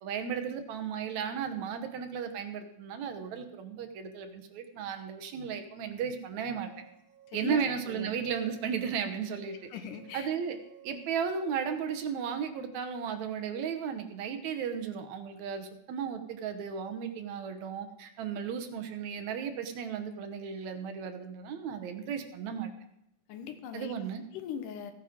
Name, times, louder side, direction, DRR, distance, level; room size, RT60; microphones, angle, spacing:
voice 1, 0.0-6.7 7.3-9.6 10.1-10.6 10.8-22.7 23.7-24.2, right 7 dB, 65° right, 7 dB, 2.0 m, -35 dB
sound 1, 6.5-12.4, right 10 dB, 90° right, 1.0 m, -57 dB
voice 2, 7.3-7.6 7.9-8.1 9.7-10.3 23.3-23.9 24.3-24.9, left 8 dB, 70° left, 8 dB, 2.5 m, -40 dB
14.5 x 9.4 x 5.1 m, 0.79 s
omnidirectional pair, 4.1 m